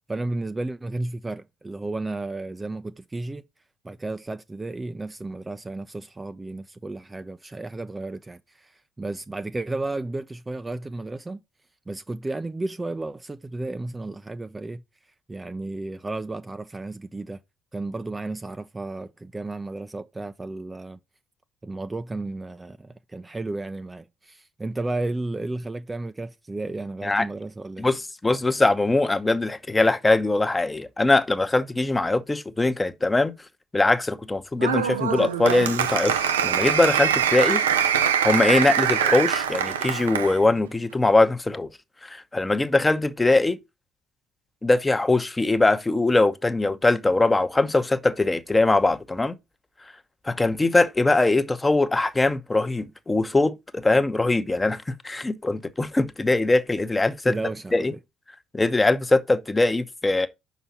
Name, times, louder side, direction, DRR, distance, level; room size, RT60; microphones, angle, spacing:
voice 1, 0.1-3.4 3.8-11.4 11.9-14.8 15.3-17.4 17.7-21.0 21.6-27.9 57.3-58.0, right 2 dB, 20° right, 0.5 m, -33 dB
voice 2, 27.8-33.3 33.7-36.1 36.4-37.6 38.2-41.7 42.0-43.6 44.6-49.3 50.2-57.3 57.7-57.9 58.5-60.3, left 2 dB, 20° left, 0.9 m, -22 dB
Applause, 34.6-40.4, right 8 dB, 90° right, 0.4 m, -23 dB
5.6 x 4.1 x 5.7 m
hypercardioid pair, 55°, 0 cm